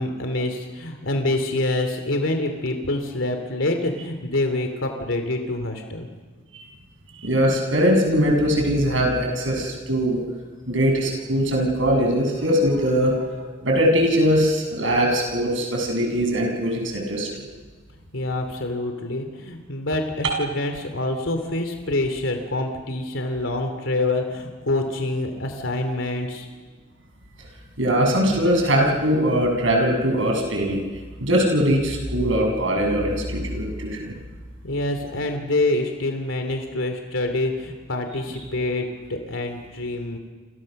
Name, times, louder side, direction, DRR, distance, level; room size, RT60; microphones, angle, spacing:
voice 1, 0.0-6.1 18.1-26.5 34.6-40.2, left 2 dB, 85° left, 5 dB, 2.9 m, -26 dB
voice 2, 7.2-10.2 10.7-17.4 20.2-20.4 27.8-30.8 31.2-34.1, equal, 80° right, 2 dB, 7.2 m, -21 dB
30.0 x 26.5 x 6.6 m, 1.4 s
head